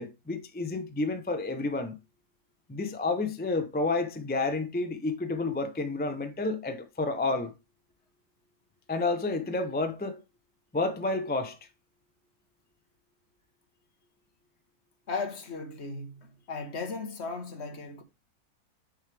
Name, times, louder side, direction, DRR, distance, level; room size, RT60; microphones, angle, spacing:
voice 1, 0.0-2.0 2.7-7.5 8.9-10.2 10.7-11.6, left 3 dB, 15° left, 0.4 m, -30 dB
voice 2, 15.1-18.0, left 4 dB, 45° left, 1.4 m, -36 dB
6.7 x 6.4 x 3.3 m
omnidirectional pair, 1.6 m